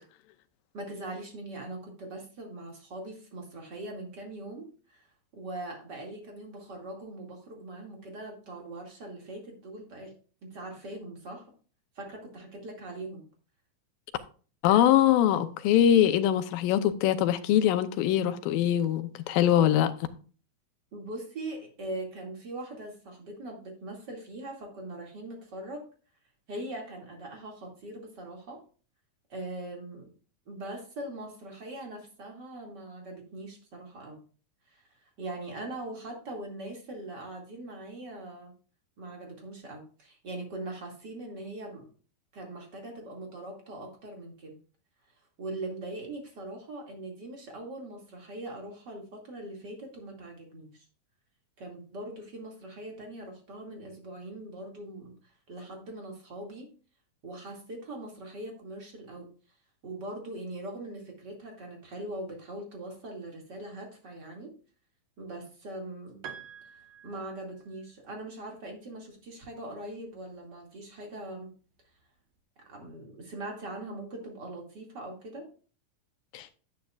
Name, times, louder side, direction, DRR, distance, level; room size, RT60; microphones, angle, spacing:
voice 1, 0.7-5.1 5.3-10.1 10.5-11.5 12.0-13.2 20.9-25.8 26.5-28.6 29.3-30.1 30.5-34.2 34.7-34.8 35.2-38.5 39.0-41.9 42.3-44.6 45.4-50.9 51.6-55.1 55.5-56.7 57.2-59.3 59.8-64.5 65.2-66.2 67.0-71.5 72.7-75.5, right 1 dB, 35° right, 2.5 m, -41 dB
voice 2, 14.6-19.9 76.3-76.5, left 11 dB, 90° left, 2.5 m, -23 dB
Piano, 66.2-67.9, right 7 dB, 60° right, 1.9 m, -47 dB
10.0 x 9.5 x 2.4 m
omnidirectional pair, 4.0 m